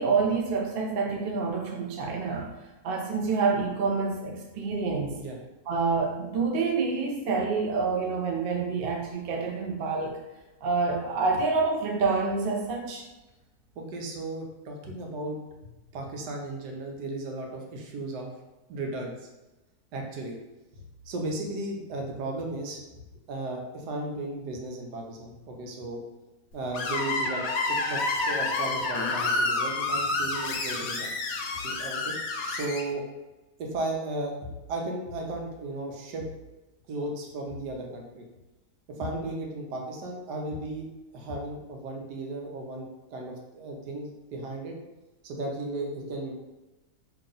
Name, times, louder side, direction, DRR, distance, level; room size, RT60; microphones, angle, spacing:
voice 1, 0.0-2.5 2.8-5.2 5.7-10.2 10.6-13.0, right 4 dB, 65° right, 0 dB, 0.5 m, -27 dB
voice 2, 13.8-18.3 18.7-19.3 19.9-20.4 20.7-22.8 23.3-26.0 26.5-31.1 31.6-32.1 32.5-33.0 33.6-34.3 34.7-36.2 36.9-38.2 39.0-40.8 41.1-44.7 45.2-46.3, right 2 dB, 85° right, 1 dB, 1.3 m, -35 dB
Screech, 26.7-32.8, left 3 dB, 70° left, 0.9 m, -29 dB
2.9 x 2.8 x 3.8 m, 1.0 s
omnidirectional pair, 1.7 m